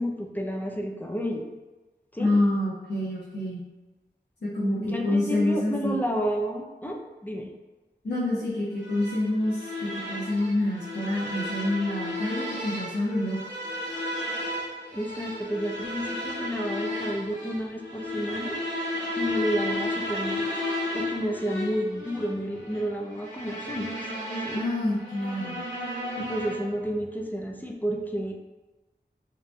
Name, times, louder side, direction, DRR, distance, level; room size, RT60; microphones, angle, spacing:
voice 1, 0.0-1.5 2.1-2.3 4.8-7.5 14.9-18.6 19.2-20.5 20.9-24.0 24.4-24.6 26.2-28.3, equal, 10° left, 0 dB, 0.4 m, -31 dB
voice 2, 2.2-3.7 4.4-6.0 8.0-13.4 24.5-25.6, left 1 dB, 65° left, -8 dB, 0.6 m, -27 dB
sound 1, 8.8-26.8, left 1 dB, 85° left, 1.0 m, -33 dB
2.8 x 2.1 x 2.5 m, 1.2 s
wide cardioid pair, 40°, 18 cm